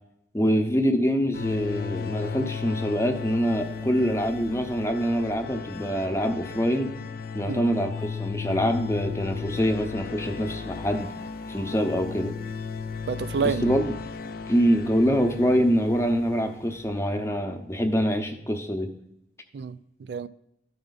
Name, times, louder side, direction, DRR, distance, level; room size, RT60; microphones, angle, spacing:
voice 1, 0.3-6.9 7.3-11.1 11.5-12.3 13.6-13.9 14.5-18.9, equal, 15° left, 0.7 m, -25 dB
sound 1, 1.3-17.3, left 5 dB, 55° left, 0.4 m, -35 dB
voice 2, 13.1-13.8 19.5-20.3, right 6 dB, 70° right, 0.3 m, -29 dB
13.0 x 5.0 x 4.0 m
head